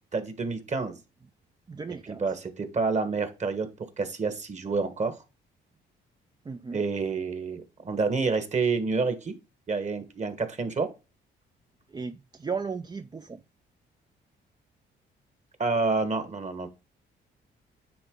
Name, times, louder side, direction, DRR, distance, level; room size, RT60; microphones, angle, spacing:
voice 1, 0.1-0.9 2.0-3.7 4.0-5.2 6.7-9.4 9.7-10.9 15.6-16.7, right 4 dB, 35° right, 1.6 m, -28 dB
voice 2, 1.7-2.2 6.5-6.8 11.9-13.4, right 5 dB, 20° right, 0.5 m, -35 dB
9.4 x 4.0 x 3.8 m
cardioid pair, 90°, 20 cm